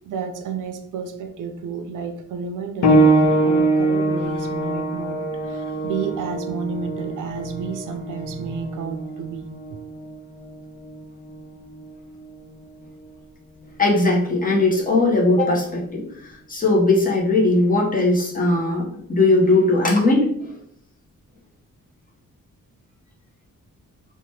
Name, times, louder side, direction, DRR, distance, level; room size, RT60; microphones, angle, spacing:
voice 1, 0.1-9.8, right 5 dB, 80° right, 6 dB, 0.5 m, -31 dB
sound 1, 2.8-13.1 14.0-14.1 14.9-15.0, right 2 dB, 70° left, 0.5 m, -23 dB
voice 2, 13.8-20.6, left 2 dB, 25° left, -3 dB, 0.7 m, -19 dB
2.8 x 2.2 x 3.1 m, 0.65 s
wide cardioid pair, 130°, 31 cm